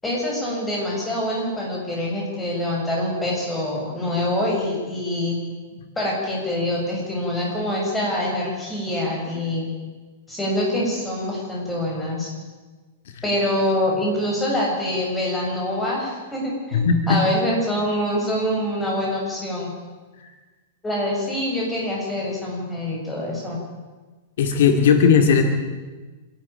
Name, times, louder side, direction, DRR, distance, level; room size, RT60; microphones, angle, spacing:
voice 1, 0.0-5.4 6.0-9.7 10.3-12.3 13.2-19.7 20.8-23.6, left 1 dB, 10° left, -3 dB, 7.3 m, -25 dB
voice 2, 16.7-17.2 24.4-25.4, left 6 dB, 70° left, 6 dB, 2.3 m, -16 dB
26.5 x 12.0 x 9.0 m, 1.3 s
supercardioid pair, 145°, 0 cm